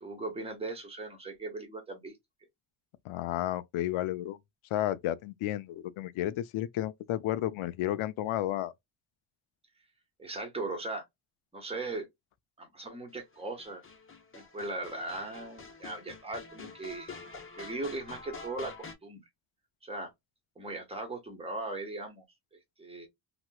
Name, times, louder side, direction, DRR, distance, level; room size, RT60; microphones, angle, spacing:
voice 1, 0.0-2.2 10.2-11.0 11.5-12.1 12.6-13.8 14.3-17.1 17.6-18.7 19.0-19.2 19.8-20.1 20.6-22.2 22.5-23.1, right 2 dB, 10° right, 1.1 m, -38 dB
voice 2, 3.0-4.4 4.7-8.7, left 13 dB, 85° left, 0.6 m, -32 dB
sound 1, 13.3-18.9, left 4 dB, 25° left, 0.9 m, -47 dB
3.0 x 3.0 x 2.2 m
cardioid pair, 130°, 48 cm